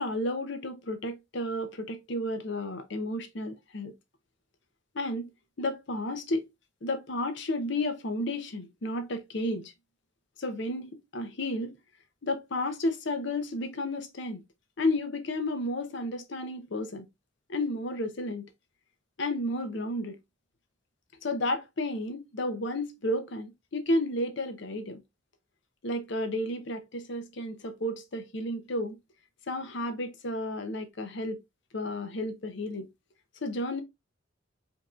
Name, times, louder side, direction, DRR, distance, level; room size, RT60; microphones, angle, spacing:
voice 1, 0.0-3.9 4.9-5.3 5.6-6.5 6.8-9.7 10.4-11.8 12.2-14.4 14.8-17.0 17.5-18.5 19.2-20.2 21.2-25.0 25.8-29.0 29.5-31.4 31.7-32.9 33.4-33.8, left 1 dB, 65° left, 0.8 m, -32 dB
5.2 x 2.9 x 2.4 m
head